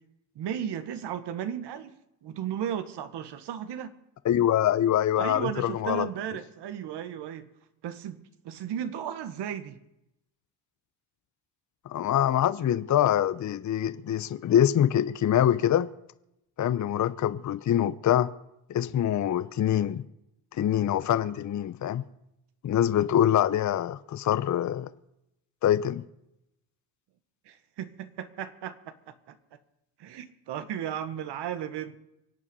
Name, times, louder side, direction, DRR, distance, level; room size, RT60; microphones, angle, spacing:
voice 1, 0.3-1.9 2.2-3.9 5.2-7.5 7.8-9.8 27.5-29.4 30.0-32.0, right 9 dB, 65° right, 1.6 m, -35 dB
voice 2, 4.2-6.1 11.9-15.9 16.6-18.3 18.7-20.0 20.5-22.0 22.6-24.9 25.6-26.0, left 11 dB, 40° left, 0.8 m, -24 dB
24.5 x 8.6 x 5.4 m
supercardioid pair, 80°, 45 cm